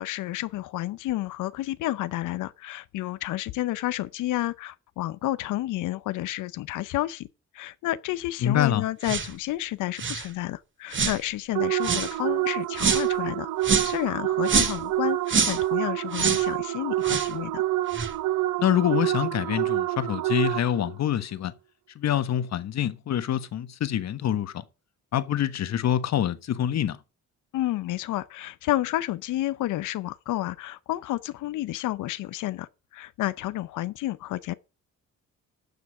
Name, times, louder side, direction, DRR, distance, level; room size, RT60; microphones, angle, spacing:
voice 1, 0.0-7.3 7.5-17.6 27.5-34.5, left 15 dB, 85° left, 0.7 m, -30 dB
voice 2, 8.4-8.8 18.6-21.5 21.9-24.6 25.1-27.0, left 10 dB, 60° left, 1.3 m, -26 dB
sound 1, 9.0-9.3 10.0-10.3 10.9-11.2 11.8-12.1 12.8-13.1 13.6-14.0 14.4-14.8 15.3-15.6 16.1-16.5 17.0-17.3 17.9-18.1, right 5 dB, 40° right, 1.9 m, -25 dB
sound 2, 11.5-20.9, right 15 dB, 80° right, 0.9 m, -27 dB
12.0 x 6.8 x 4.8 m
cardioid pair, 90°, 30 cm